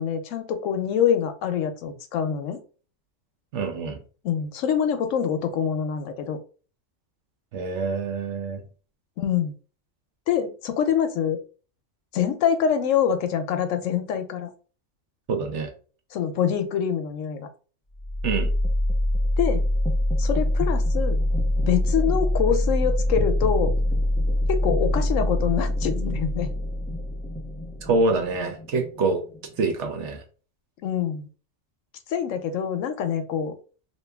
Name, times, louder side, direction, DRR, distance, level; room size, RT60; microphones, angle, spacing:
voice 1, 0.0-2.6 4.2-6.4 9.2-9.5 10.3-11.4 12.1-14.5 16.1-17.5 19.4-19.6 20.2-21.2 21.7-23.7 24.5-26.5 30.8-31.3 32.1-33.5, left 8 dB, 75° left, 9 dB, 0.9 m, -25 dB
voice 2, 3.5-4.0 7.5-8.6 15.3-15.7 18.2-18.5 27.8-29.2 29.6-30.2, right 3 dB, 65° right, 4 dB, 1.0 m, -25 dB
sound 1, 17.9-29.9, left 1 dB, 5° left, 0.3 m, -24 dB
3.0 x 2.6 x 3.3 m, 0.37 s
omnidirectional pair, 1.4 m